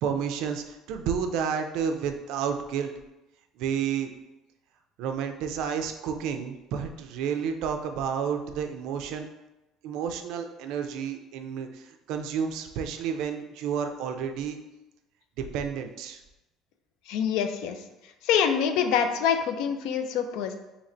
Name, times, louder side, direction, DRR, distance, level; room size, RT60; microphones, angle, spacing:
voice 1, 0.0-2.9 3.6-4.1 5.0-9.3 9.8-14.6 15.4-16.2, right 7 dB, 70° right, 6 dB, 0.4 m, -31 dB
voice 2, 17.1-17.8 18.2-20.6, left 7 dB, 75° left, 8 dB, 0.3 m, -25 dB
2.8 x 2.6 x 4.2 m, 1.0 s
cardioid pair, 155°, 0 cm